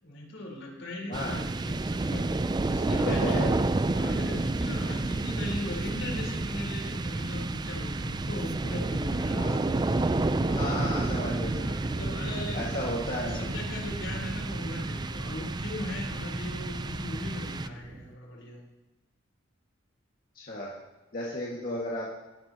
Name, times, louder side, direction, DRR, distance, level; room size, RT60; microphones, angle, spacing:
voice 1, 0.0-2.3 2.7-3.4 3.9-11.0 11.6-12.7 13.3-18.6, left 1 dB, 75° left, -2 dB, 4.1 m, -39 dB
sound 1, 1.1-18.1, right 2 dB, 20° right, 0.4 m, -30 dB
voice 2, 3.1-3.5 9.3-9.6 10.5-11.9 12.5-13.4 20.3-20.7 21.1-22.1, left 1 dB, 50° left, -5 dB, 2.0 m, -33 dB
17.5 x 11.5 x 3.0 m, 1.1 s
head